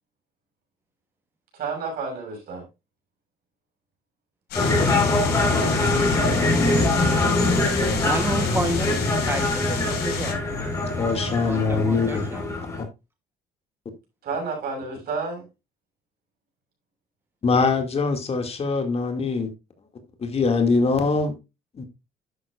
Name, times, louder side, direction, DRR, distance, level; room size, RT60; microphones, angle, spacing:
voice 1, 1.5-2.7 4.7-5.1 14.2-15.5, right 4 dB, 65° right, 6.4 m, -31 dB
sound 1, 4.5-10.3, left 7 dB, 70° left, 4.6 m, -32 dB
sound 2, 4.6-12.8, left 2 dB, 20° left, 4.2 m, -23 dB
voice 2, 8.0-8.9 9.2-10.4 11.4-12.4, right 2 dB, 15° right, 1.0 m, -29 dB
voice 3, 11.0-12.2 12.8-12.9 17.4-19.5 20.2-21.3 21.8-21.9, left 4 dB, 35° left, 2.2 m, -23 dB
11.5 x 8.1 x 2.4 m
cardioid pair, 110°, 17 cm